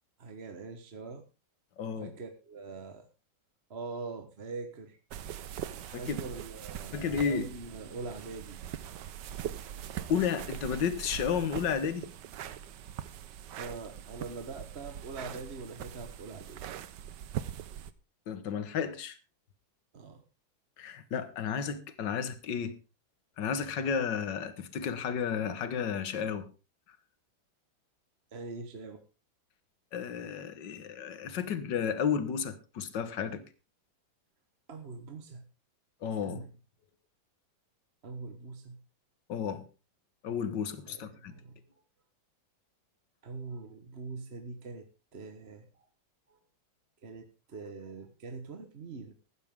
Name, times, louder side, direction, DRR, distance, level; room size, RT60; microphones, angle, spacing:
voice 1, 0.2-1.2 2.0-3.1 3.7-5.0 6.0-8.6 13.5-16.6 19.9-20.2 28.3-29.0 34.7-35.4 36.2-36.5 38.0-38.8 40.9-41.5 43.2-44.9 45.1-45.7 46.3-46.4 47.0-49.1, right 4 dB, 35° right, 1.3 m, -43 dB
voice 2, 1.8-2.1 5.9-6.2 6.9-7.5 10.1-12.1 18.3-19.2 20.8-22.8 23.4-26.5 29.9-33.4 36.0-36.4 39.3-39.6 40.2-41.3, left 7 dB, 65° left, 2.0 m, -32 dB
sound 1, 5.1-17.9, right 10 dB, 65° right, 1.4 m, -41 dB
14.5 x 12.5 x 3.7 m
omnidirectional pair, 2.1 m